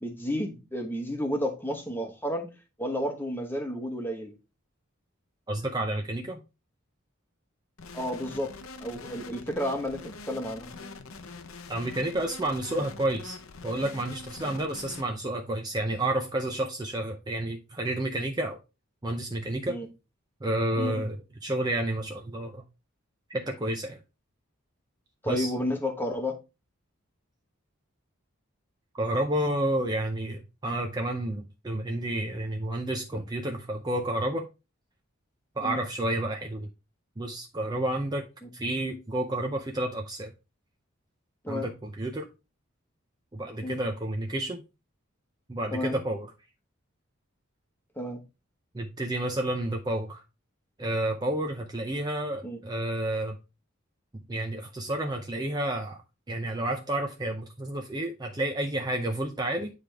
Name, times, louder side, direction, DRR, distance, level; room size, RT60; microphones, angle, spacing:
voice 1, 0.0-2.5 2.8-4.3 7.9-8.5 8.8-10.7 19.7-19.9 20.8-21.0 25.2-26.4 35.6-35.8 41.4-41.7 43.6-43.8 45.7-46.0 48.0-48.2 52.4-52.6, left 1 dB, 10° left, 1.1 m, -31 dB
voice 2, 5.5-6.4 11.7-13.4 13.6-18.6 19.0-19.8 20.4-22.6 23.3-24.0 25.3-25.5 28.9-34.5 35.6-36.7 37.2-38.3 38.5-40.3 41.5-42.3 43.3-44.6 45.5-46.3 48.7-50.2 50.8-53.4 54.3-56.0 56.3-59.7, right 1 dB, 20° right, 0.5 m, -30 dB
sound 1, 7.8-15.0, left 3 dB, 85° left, 0.8 m, -44 dB
9.5 x 3.4 x 3.4 m
head